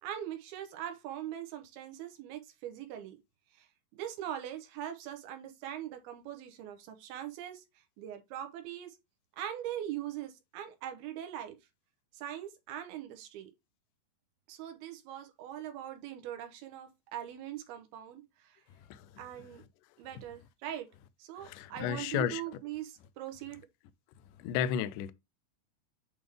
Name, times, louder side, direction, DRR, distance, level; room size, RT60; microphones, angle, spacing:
voice 1, 0.0-3.2 3.5-3.7 3.9-7.6 8.0-9.0 9.4-11.6 12.1-13.5 14.5-18.6 19.2-19.6 20.0-20.9 21.2-23.6, right 11 dB, 85° right, 2.8 m, -41 dB
voice 2, 21.4-22.4 24.4-25.1, left 9 dB, 85° left, 1.8 m, -33 dB
8.0 x 3.5 x 3.4 m
omnidirectional pair, 4.4 m